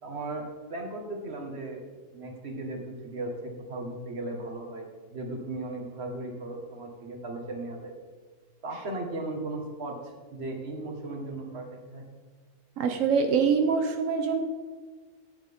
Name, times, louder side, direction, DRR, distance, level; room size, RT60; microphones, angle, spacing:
voice 1, 0.0-1.8 2.1-7.9 8.6-12.0, right 2 dB, 55° right, 2 dB, 1.9 m, -37 dB
voice 2, 12.8-14.4, right 6 dB, 90° right, 5 dB, 1.2 m, -24 dB
14.5 x 9.0 x 3.6 m, 1.4 s
omnidirectional pair, 1.3 m